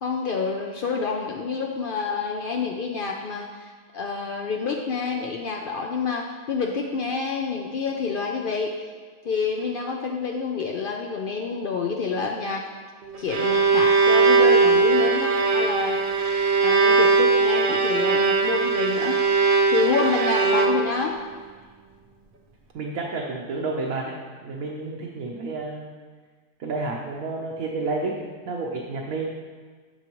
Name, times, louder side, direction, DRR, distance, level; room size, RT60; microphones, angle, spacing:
voice 1, 0.0-8.7 9.2-12.7 13.2-16.0 16.6-19.2 19.7-21.2, left 5 dB, 85° left, 1 dB, 0.4 m, -28 dB
Bowed string instrument, 13.0-21.1, right 4 dB, 50° right, 0.6 m, -20 dB
voice 2, 22.7-25.9 26.6-29.3, right 3 dB, 65° right, -2 dB, 1.2 m, -30 dB
9.5 x 6.3 x 3.0 m, 1.5 s
omnidirectional pair, 1.7 m